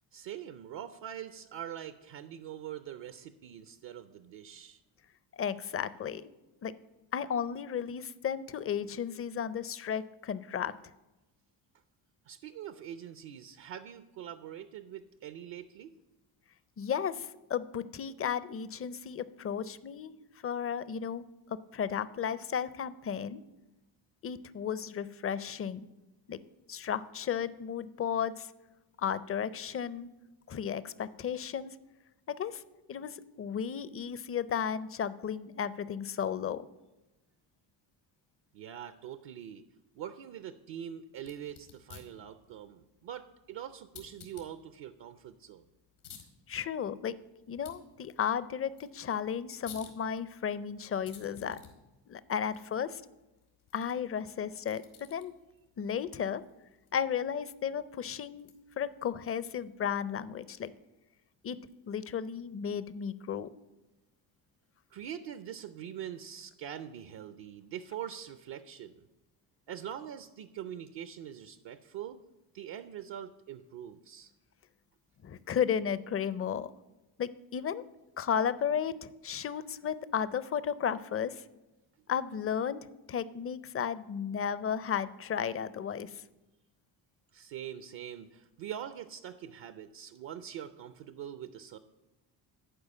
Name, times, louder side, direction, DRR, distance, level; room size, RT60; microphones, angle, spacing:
voice 1, 0.1-4.8 12.3-15.9 38.5-39.6 39.9-45.6 64.9-69.1 69.7-72.2 72.5-74.3 87.3-91.8, right 10 dB, 60° right, 11 dB, 0.7 m, -43 dB
voice 2, 5.3-6.3 6.6-6.7 7.1-10.7 16.8-20.1 20.4-23.4 24.2-25.9 26.3-26.4 26.7-28.5 29.0-30.1 30.5-31.8 32.3-32.6 32.9-36.7 46.5-47.2 47.5-51.6 52.1-53.0 53.7-55.3 55.8-56.4 56.9-58.5 58.8-60.7 61.4-61.6 61.9-63.5 75.2-76.7 77.2-77.8 78.2-81.4 82.1-86.2, left 8 dB, 30° left, 16 dB, 0.5 m, -34 dB
sound 1, 41.1-59.8, left 8 dB, 90° left, 1.9 m, -57 dB
11.5 x 4.7 x 7.4 m, 1.1 s
supercardioid pair, 70°, 49 cm